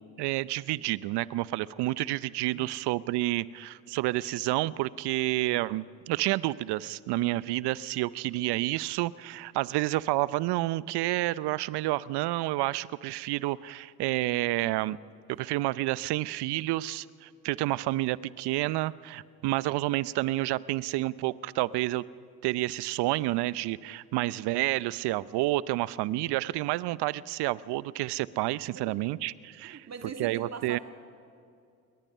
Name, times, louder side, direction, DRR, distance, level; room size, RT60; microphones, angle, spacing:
voice 1, 0.2-15.0 15.3-22.0 22.4-29.9 30.2-30.8, right 17 dB, 60° right, 19 dB, 0.7 m, -29 dB
voice 2, 29.6-30.8, right 5 dB, 35° right, 4 dB, 2.6 m, -41 dB
28.0 x 22.0 x 5.6 m, 2.4 s
hypercardioid pair, 60°, 47 cm